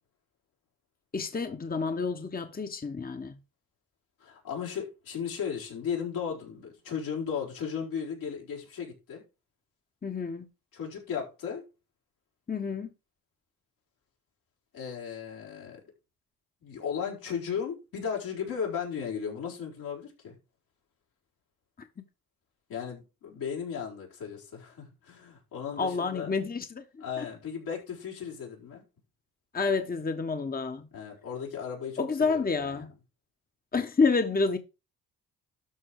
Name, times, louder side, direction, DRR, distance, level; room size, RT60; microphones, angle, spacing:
voice 1, 1.1-3.4 10.0-10.5 12.5-12.9 21.8-21.9 25.8-27.3 29.5-30.9 32.0-32.9 33.7-34.6, left 4 dB, 25° left, 1.2 m, -29 dB
voice 2, 4.2-9.2 10.7-11.6 14.7-15.8 16.6-20.4 22.7-26.3 27.0-28.8 30.9-32.9, left 7 dB, 80° left, 4.6 m, -36 dB
12.5 x 4.5 x 4.8 m
supercardioid pair, 60°, 36 cm